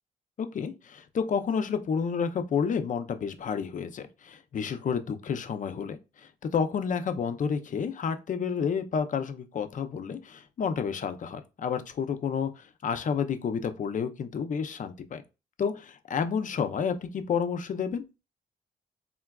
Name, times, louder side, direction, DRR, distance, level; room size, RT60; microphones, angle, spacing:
voice 1, 0.4-15.2 15.6-18.0, left 6 dB, 45° left, 0.5 m, -30 dB
3.7 x 2.3 x 2.2 m
cardioid pair, 70°, 18 cm